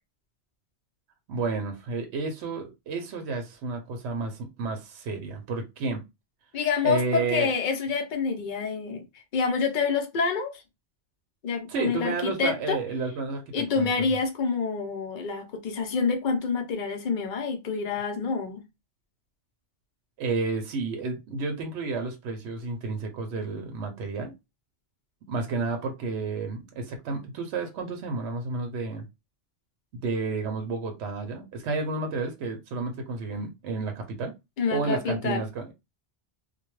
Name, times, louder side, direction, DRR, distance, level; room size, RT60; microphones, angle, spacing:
voice 1, 1.3-6.0 6.8-7.5 11.7-13.9 20.2-24.3 25.3-29.1 29.9-34.3 34.7-35.7, right 4 dB, 70° right, 0.8 m, -31 dB
voice 2, 6.5-9.0 9.3-10.6 11.4-12.8 13.5-18.6 34.6-35.4, left 5 dB, 50° left, 0.7 m, -27 dB
2.2 x 2.2 x 3.0 m
omnidirectional pair, 1.2 m